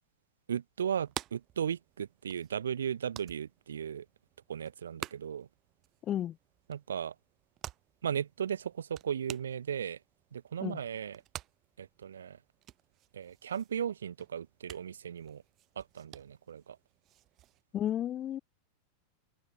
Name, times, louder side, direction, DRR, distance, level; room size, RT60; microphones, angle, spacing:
voice 1, 0.5-4.1 4.5-5.5 6.7-7.1 8.0-10.0 10.3-11.2 11.8-12.4 13.1-15.4 15.8-16.8, right 8 dB, 75° right, 2.2 m, -36 dB
sound 1, 0.9-17.6, right 14 dB, 35° right, 3.6 m, -50 dB
voice 2, 17.7-18.4, left 11 dB, 35° left, 1.0 m, -32 dB
open air
figure-of-eight pair, 90°, 0 cm